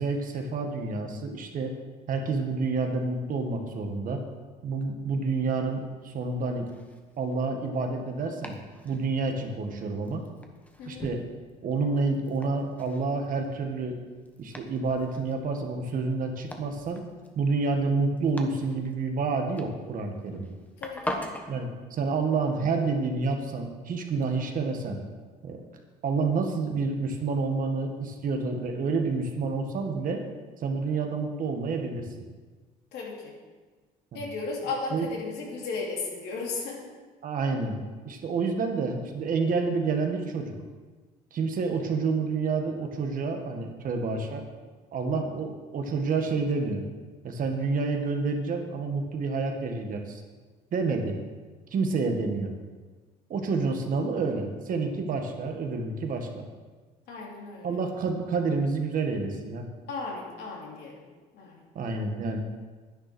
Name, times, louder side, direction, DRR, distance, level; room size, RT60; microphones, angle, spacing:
voice 1, 0.0-1.8 2.1-4.2 4.6-6.7 7.2-8.6 8.8-10.2 10.9-11.2 11.6-14.0 14.4-17.0 17.4-20.5 21.5-25.0 25.4-25.6 26.0-30.2 30.6-32.1 34.1-34.2 34.9-35.1 37.2-37.8 38.1-40.5 41.3-44.4 44.9-46.8 47.2-50.2 50.7-51.2 51.7-52.5 53.3-56.4 57.6-59.7 61.8-62.4, right 4 dB, 55° right, 3 dB, 1.8 m, -29 dB
Domestic sounds home sounds, 6.0-21.5, left 1 dB, 10° left, 1.3 m, -44 dB
voice 2, 20.8-21.2 32.9-33.3 34.1-36.9 57.1-57.7 59.9-61.0 61.3-61.6, left 4 dB, 75° left, -2 dB, 3.2 m, -35 dB
10.0 x 9.9 x 6.2 m, 1.4 s
cardioid pair, 110°, 17 cm